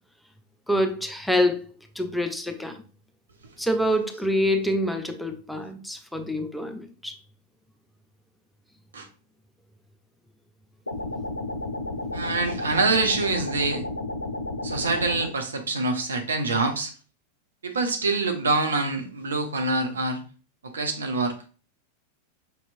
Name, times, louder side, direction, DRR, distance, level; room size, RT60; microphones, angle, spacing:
voice 1, 0.7-1.6 2.0-2.8 3.6-7.2, equal, ahead, 5 dB, 0.5 m, -26 dB
sound 1, 10.9-15.3, left 2 dB, 85° left, 0.3 m, -32 dB
voice 2, 12.1-13.8 14.6-16.9 17.6-20.2 20.6-21.3, right 3 dB, 70° right, 5 dB, 0.7 m, -25 dB
5.4 x 2.9 x 2.5 m, 0.38 s
figure-of-eight pair, 90°, 0 cm